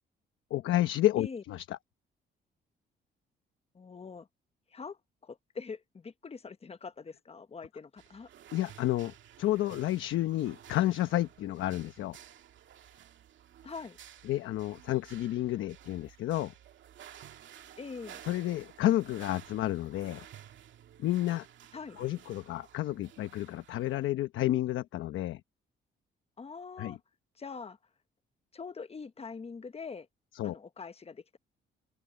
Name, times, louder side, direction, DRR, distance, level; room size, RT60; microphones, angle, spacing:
voice 1, 0.5-1.8 8.5-9.1 9.4-12.2 14.3-16.5 18.2-20.2 21.0-21.5 22.0-25.4 26.8-27.0 30.3-30.6, left 14 dB, 80° left, 1.0 m, -30 dB
voice 2, 3.7-4.3 4.7-8.3 13.6-14.0 17.8-18.2 21.7-22.0 26.4-27.0 27.4-27.8 28.5-30.1 30.4-31.4, left 5 dB, 30° left, 1.2 m, -43 dB
sound 1, 8.0-24.1, right 10 dB, 70° right, 2.2 m, -53 dB
open air
cardioid pair, 90°, 20 cm